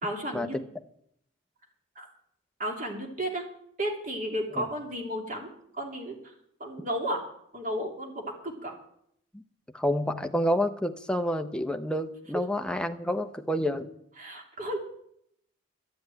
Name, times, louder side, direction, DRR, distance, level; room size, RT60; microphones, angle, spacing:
voice 1, 0.0-0.6 2.0-2.1 2.6-3.5 3.8-6.2 6.6-7.2 7.5-8.8 14.2-14.8, equal, 40° right, 2 dB, 2.8 m, -33 dB
voice 2, 9.7-13.9, equal, 5° left, 6 dB, 0.7 m, -28 dB
12.5 x 7.8 x 9.0 m, 0.70 s
head